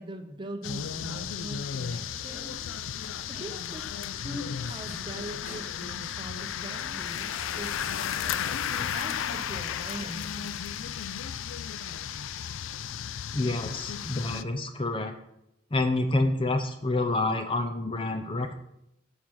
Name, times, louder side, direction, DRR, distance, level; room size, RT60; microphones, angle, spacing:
voice 1, 0.0-2.5 3.3-3.9 4.1-7.8 8.7-10.5, right 1 dB, 25° right, 6 dB, 0.9 m, -41 dB
sound 1, 0.6-14.4, left 8 dB, 90° left, 0.4 m, -34 dB
sound 2, 1.6-10.2, left 1 dB, 45° left, 4.0 m, -51 dB
voice 2, 13.3-15.1 15.7-18.6, left 2 dB, 25° left, 7 dB, 0.6 m, -28 dB
9.0 x 7.4 x 4.8 m, 0.83 s
head